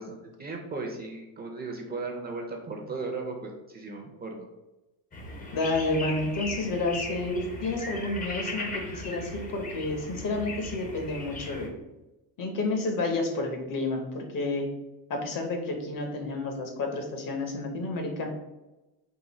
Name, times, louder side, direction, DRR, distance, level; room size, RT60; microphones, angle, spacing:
voice 1, 0.0-4.5, right 3 dB, 25° right, 1 dB, 0.6 m, -36 dB
sound 1, 5.1-11.7, left 2 dB, 20° left, 0.7 m, -38 dB
voice 2, 5.5-11.7 12.4-14.7 15.1-18.3, left 2 dB, 50° left, 3 dB, 1.0 m, -30 dB
3.8 x 2.6 x 4.0 m, 1.0 s
cardioid pair, 120°, 41 cm